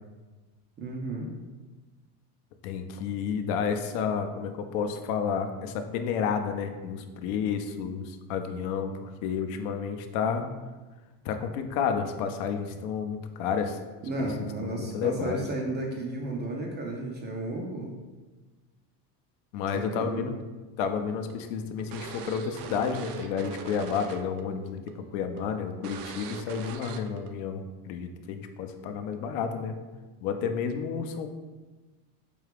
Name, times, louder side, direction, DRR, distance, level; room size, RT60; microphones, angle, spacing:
voice 1, 0.8-1.3 14.0-17.9 19.7-20.3, right 2 dB, 25° right, 0 dB, 0.3 m, -33 dB
voice 2, 2.6-10.5 11.2-13.8 14.2-15.4 19.5-20.4 20.8-29.8 30.2-31.3, left 6 dB, 70° left, 7 dB, 0.6 m, -31 dB
sound 1, 20.8-24.4 24.7-24.9 25.4-25.5 25.8-27.3, right 7 dB, 75° right, 0.5 m, -41 dB
4.5 x 2.4 x 3.3 m, 1.2 s
supercardioid pair, 115°, 48 cm